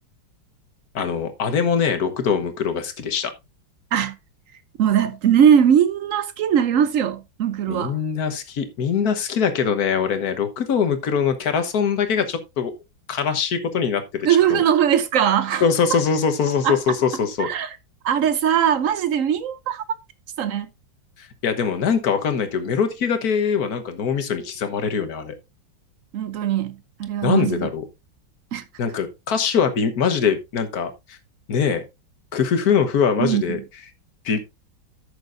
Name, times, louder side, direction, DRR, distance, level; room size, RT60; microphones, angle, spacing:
voice 1, 0.9-3.3 7.7-12.7 13.1-14.6 15.6-17.5 21.4-25.3 27.2-27.8 28.8-31.2 31.5-31.8 32.3-33.6 34.2-34.4, left 6 dB, 55° left, 1.5 m, -22 dB
voice 2, 4.8-8.0 14.2-15.6 16.6-17.0 17.4-17.8 18.0-19.8 20.4-20.7 26.1-27.7 28.5-28.6 33.2-33.6, right 9 dB, 85° right, 0.7 m, -20 dB
14.0 x 6.8 x 2.5 m
omnidirectional pair, 2.2 m